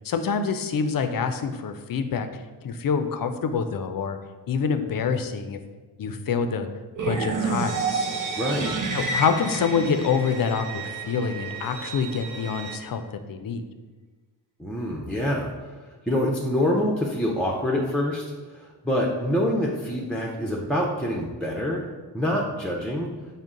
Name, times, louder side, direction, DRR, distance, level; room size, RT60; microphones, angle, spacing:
voice 1, 0.0-2.3 2.6-4.2 4.5-5.6 6.0-6.7 7.1-8.1 8.9-13.0 13.3-13.6, left 6 dB, 50° left, 8 dB, 0.5 m, -26 dB
sound 1, 7.0-10.9, right 4 dB, 45° right, 0.7 m, -29 dB
Bowed string instrument, 7.7-12.7, right 5 dB, 75° right, 1.0 m, -38 dB
voice 2, 8.4-8.7 14.6-15.5 16.1-18.2 18.5-21.9 22.1-23.1, left 1 dB, 5° left, -3 dB, 0.5 m, -26 dB
5.2 x 2.1 x 3.6 m, 1.3 s
cardioid pair, 55°, 43 cm